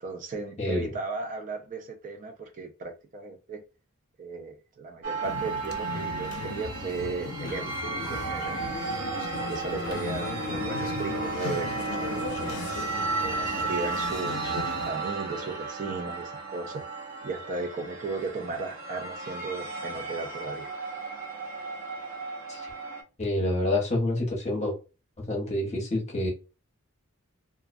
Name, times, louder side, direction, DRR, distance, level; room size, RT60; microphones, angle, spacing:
voice 1, 0.0-3.6 4.2-7.8 8.1-8.6 9.5-12.2 13.2-16.8 17.2-20.7, right 3 dB, 35° right, 0.3 m, -36 dB
sound 1, 5.0-23.0, right 4 dB, 65° right, 0.7 m, -34 dB
sound 2, 5.2-14.9, left 4 dB, 75° left, 0.5 m, -37 dB
voice 2, 23.2-24.7 25.3-26.3, left 1 dB, 30° left, 0.8 m, -27 dB
2.3 x 2.1 x 2.4 m
head